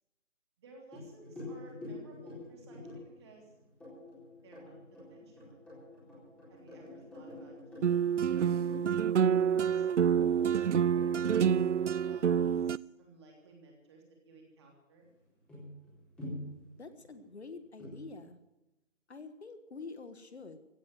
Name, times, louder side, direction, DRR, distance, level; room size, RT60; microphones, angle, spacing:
voice 1, 0.6-3.5 4.4-5.6 6.5-7.5 7.8-11.4 11.9-15.1, right 3 dB, 20° right, 0 dB, 3.2 m, -57 dB
sound 1, 0.9-12.1 15.0-15.1 15.5-17.2 17.8-18.2, left 1 dB, 5° left, 4.1 m, -47 dB
sound 2, 7.8-12.8, right 8 dB, 65° right, 0.5 m, -27 dB
voice 2, 16.8-18.4 19.1-20.7, left 4 dB, 55° left, 11 dB, 1.5 m, -47 dB
16.0 x 9.4 x 9.1 m, 1.0 s
figure-of-eight pair, 165°, 38 cm